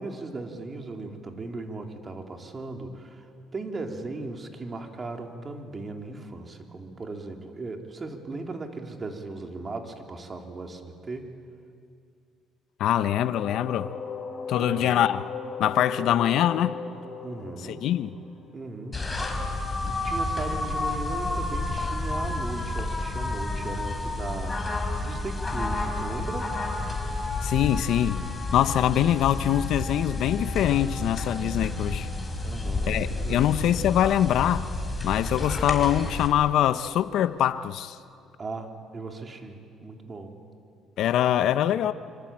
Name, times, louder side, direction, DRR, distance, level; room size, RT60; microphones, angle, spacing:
voice 1, 0.0-3.2 3.5-11.3 14.6-15.0 17.2-17.9 18.5-24.6 25.0-26.6 32.4-33.5 38.4-40.4, right 3 dB, 30° right, 3.5 m, -37 dB
voice 2, 12.8-13.9 14.5-15.2 15.6-16.8 17.7-18.1 27.4-28.3 28.5-32.1 32.9-34.7 35.0-38.0 41.0-41.9, left 11 dB, 70° left, 1.0 m, -23 dB
sound 1, 13.3-19.1, left 5 dB, 50° left, 6.0 m, -37 dB
sound 2, 18.9-36.3, left 2 dB, 20° left, 5.3 m, -30 dB
26.0 x 25.5 x 8.9 m
cardioid pair, 85°, 0 cm